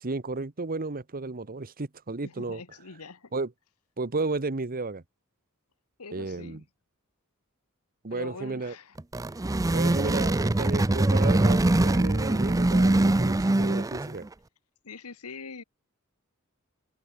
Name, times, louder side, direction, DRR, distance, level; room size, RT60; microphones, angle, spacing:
voice 1, 0.0-2.6 3.3-3.5 4.0-5.0 6.1-6.6 8.0-8.7 9.7-14.3, right 3 dB, 40° right, 1.1 m, -33 dB
voice 2, 2.2-3.3 6.0-6.6 8.1-8.9 14.8-15.6, left 4 dB, 75° left, 1.4 m, -43 dB
sound 1, 9.0-14.3, right 2 dB, 15° right, 0.5 m, -23 dB
head